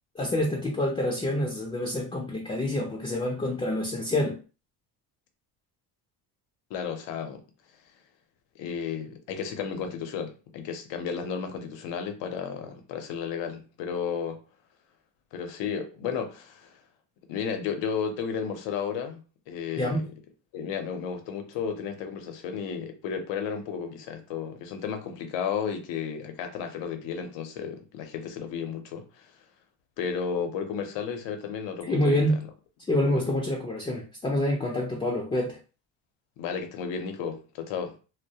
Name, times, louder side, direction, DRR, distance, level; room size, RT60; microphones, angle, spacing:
voice 1, 0.1-4.4 19.8-20.1 31.9-32.4 32.9-35.6, left 1 dB, 15° left, 0.4 m, -27 dB
voice 2, 6.7-7.4 8.6-14.4 15.3-16.7 17.3-20.0 20.5-29.3 30.0-32.2 33.0-33.2 36.4-37.9, left 7 dB, 80° left, 0.7 m, -33 dB
2.2 x 2.0 x 2.7 m
cardioid pair, 90°, 43 cm